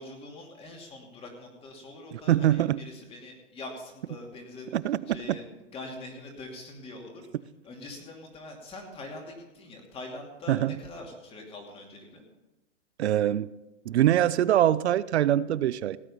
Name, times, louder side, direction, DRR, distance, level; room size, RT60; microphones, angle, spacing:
voice 1, 0.0-5.4 5.7-7.2 7.6-12.2, left 2 dB, 15° left, 1 dB, 2.8 m, -43 dB
voice 2, 2.1-2.8 4.7-5.0 10.5-10.7 13.0-13.5 13.9-16.0, right 12 dB, 60° right, 18 dB, 0.6 m, -23 dB
17.0 x 9.1 x 5.7 m, 1.0 s
hypercardioid pair, 145°, 37 cm